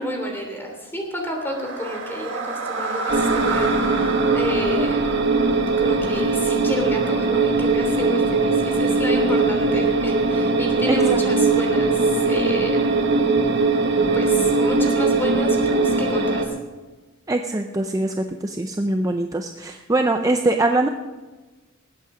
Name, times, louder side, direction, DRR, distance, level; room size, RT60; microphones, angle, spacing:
voice 1, 0.0-5.2 5.8-13.1 14.1-16.5, equal, 10° left, 1 dB, 3.1 m, -30 dB
sound 1, 1.3-7.5, right 4 dB, 70° right, 1.8 m, -30 dB
sound 2, 3.1-16.5, right 3 dB, 55° right, 1.5 m, -20 dB
voice 2, 10.9-11.2 17.3-20.9, right 2 dB, 15° right, 5 dB, 0.5 m, -22 dB
19.5 x 8.5 x 5.0 m, 1.3 s
head